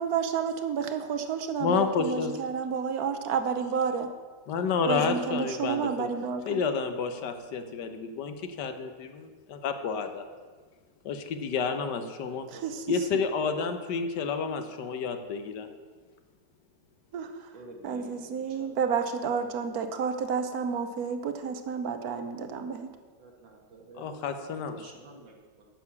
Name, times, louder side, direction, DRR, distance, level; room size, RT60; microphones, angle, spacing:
voice 1, 0.0-4.1 4.9-6.6 12.5-12.8 17.1-17.3 17.8-22.9, right 6 dB, 60° right, 8 dB, 1.2 m, -30 dB
voice 2, 1.6-2.3 4.5-6.1 6.5-10.2 11.0-12.5 12.9-15.7 24.0-24.9, left 5 dB, 70° left, 8 dB, 1.4 m, -30 dB
voice 3, 12.5-13.1 14.3-14.4 17.5-18.8 19.3-19.6 23.2-25.6, right 2 dB, 85° right, 0 dB, 2.4 m, -51 dB
9.6 x 6.7 x 7.0 m, 1.5 s
omnidirectional pair, 1.9 m